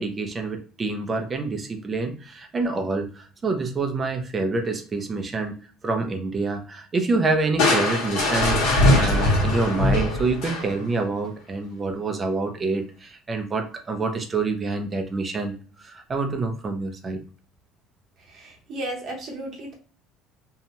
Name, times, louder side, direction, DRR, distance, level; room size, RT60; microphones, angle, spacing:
voice 1, 0.0-5.5 5.8-17.2, right 3 dB, 20° right, 5 dB, 0.4 m, -27 dB
Crushing, 7.6-11.0, left 1 dB, 65° left, 1.2 m, -21 dB
voice 2, 18.3-19.7, right 1 dB, 40° right, 0 dB, 0.8 m, -34 dB
2.7 x 2.1 x 2.9 m, 0.40 s
cardioid pair, 175°, 0 cm